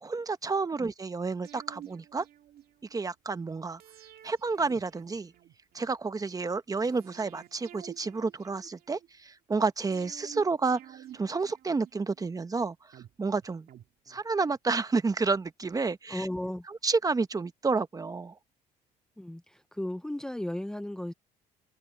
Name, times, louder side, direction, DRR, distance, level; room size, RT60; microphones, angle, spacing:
voice 1, 0.0-2.2 2.9-3.8 4.2-5.3 5.7-13.7 14.1-16.3 16.7-18.4, right 4 dB, 20° right, 1.0 m, -30 dB
sound 1, 1.4-3.0 3.8-5.9 6.8-9.1 9.9-12.3 12.9-14.6 14.9-15.0, right 11 dB, 60° right, 2.5 m, -51 dB
voice 2, 16.1-16.7 19.2-21.1, left 1 dB, 5° left, 0.7 m, -35 dB
cardioid pair, 110°, 17 cm